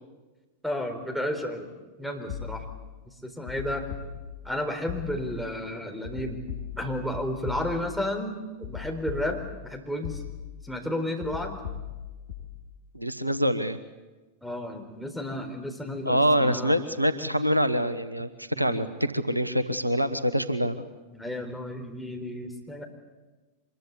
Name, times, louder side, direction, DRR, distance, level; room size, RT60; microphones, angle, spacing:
voice 1, 0.6-1.7 2.0-2.6 3.2-3.9 4.4-6.4 6.8-10.2 10.6-11.6 14.4-16.8 18.5-18.9 21.1-22.8, left 1 dB, ahead, 4 dB, 4.2 m, -32 dB
sound 1, 2.3-2.9 3.5-4.5 4.9-5.5 6.0-8.1 8.6-9.7 10.0-10.7 11.2-12.6, left 9 dB, 65° left, 6.5 m, -38 dB
voice 2, 12.9-13.8 16.0-20.9, equal, 85° right, 13 dB, 1.1 m, -25 dB
25.0 x 21.5 x 8.5 m, 1.2 s
figure-of-eight pair, 90°, 0 cm